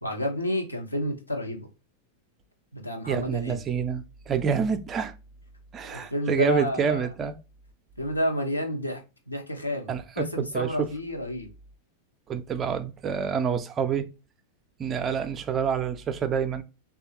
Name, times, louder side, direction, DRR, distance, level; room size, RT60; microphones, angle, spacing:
voice 1, 0.0-1.7 2.7-3.6 5.9-7.1 8.0-9.0 9.3-11.5, left 1 dB, 85° left, 0.7 m, -30 dB
voice 2, 3.1-5.1 5.7-7.4 9.9-10.9 12.3-14.1 14.8-16.6, right 7 dB, 25° right, 0.4 m, -27 dB
3.3 x 2.3 x 2.8 m
figure-of-eight pair, 90°, 0 cm